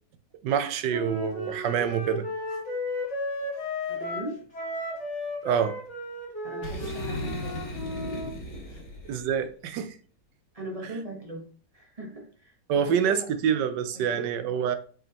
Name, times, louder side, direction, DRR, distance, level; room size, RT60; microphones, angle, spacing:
voice 1, 0.4-2.3 5.4-5.8 9.0-10.0 12.7-14.8, right 8 dB, 80° right, 1.4 m, -26 dB
Wind instrument woodwind instrument, 0.9-8.3, left 2 dB, 40° left, 2.5 m, -34 dB
voice 2, 3.9-4.4 6.4-7.7 8.7-8.8 10.5-11.5 11.7-13.3 13.9-14.5, right 1 dB, 25° right, 1.2 m, -40 dB
Boom, 6.6-9.3, equal, 80° left, 2.4 m, -36 dB
7.3 x 5.3 x 2.9 m
omnidirectional pair, 1.9 m